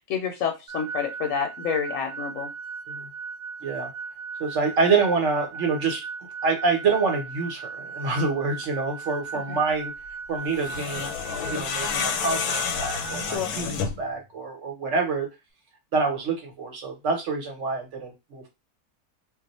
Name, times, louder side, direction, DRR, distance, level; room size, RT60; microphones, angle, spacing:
voice 1, 0.1-2.5 9.5-9.6 13.2-13.5, left 7 dB, 70° left, 3 dB, 0.9 m, -28 dB
sound 1, 0.7-13.4, right 5 dB, 75° right, 1.0 m, -37 dB
voice 2, 4.4-6.0 6.4-9.9 10.3-11.1 11.4-15.3 15.9-18.5, right 4 dB, 55° right, 2 dB, 1.2 m, -26 dB
sound 2, 10.5-14.1, left 6 dB, 85° left, 1.1 m, -29 dB
2.6 x 2.1 x 4.0 m, 0.24 s
omnidirectional pair, 1.6 m